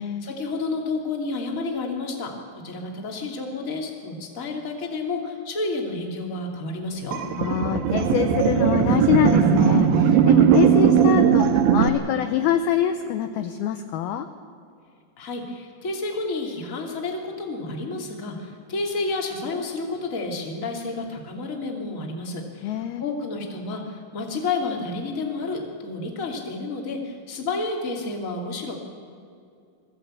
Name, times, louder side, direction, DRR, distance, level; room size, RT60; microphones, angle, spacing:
voice 1, 0.0-2.3 2.6-7.2 15.2-28.7, left 3 dB, 25° left, 1 dB, 2.1 m, -30 dB
sound 1, 7.1-11.9, right 8 dB, 85° right, 3.5 m, -18 dB
voice 2, 7.4-14.3 22.6-23.0, left 10 dB, 80° left, 8 dB, 2.3 m, -25 dB
22.5 x 15.0 x 8.8 m, 2.4 s
omnidirectional pair, 5.1 m